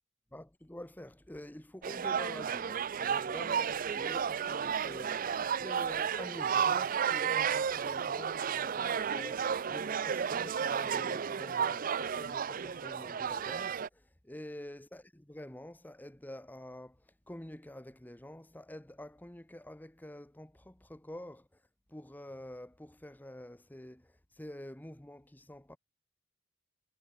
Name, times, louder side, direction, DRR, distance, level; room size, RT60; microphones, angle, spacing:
voice 1, 0.3-21.6 21.9-25.8, left 1 dB, 10° left, 0.8 m, -48 dB
sound 1, 1.8-13.9, right 7 dB, 45° right, 0.5 m, -32 dB
head